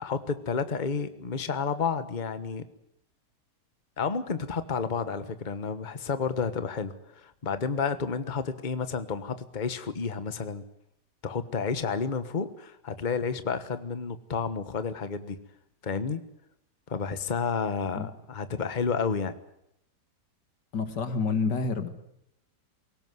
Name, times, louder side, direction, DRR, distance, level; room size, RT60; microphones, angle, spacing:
voice 1, 0.0-2.6 4.0-10.6 11.2-15.4 15.8-16.2 16.9-19.4, left 5 dB, 30° left, 11 dB, 1.4 m, -31 dB
voice 2, 20.7-21.9, left 4 dB, 90° left, 9 dB, 2.6 m, -28 dB
22.5 x 19.0 x 9.6 m, 0.79 s
omnidirectional pair, 1.8 m